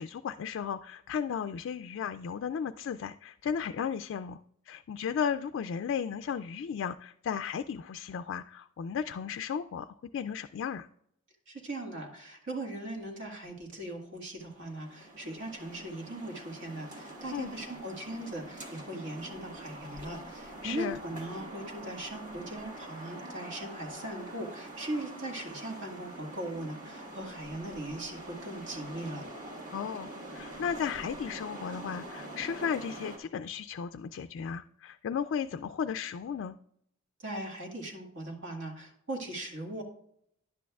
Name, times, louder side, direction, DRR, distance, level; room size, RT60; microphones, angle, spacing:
voice 1, 0.0-4.4 4.7-10.9 17.3-17.5 20.6-21.0 29.7-36.6, left 7 dB, 60° left, 9 dB, 0.3 m, -35 dB
voice 2, 11.5-29.2 37.2-39.8, right 1 dB, 60° right, 1 dB, 1.8 m, -39 dB
sound 1, 14.4-33.2, right 1 dB, 40° right, 1.5 m, -45 dB
10.5 x 8.4 x 2.3 m, 0.70 s
head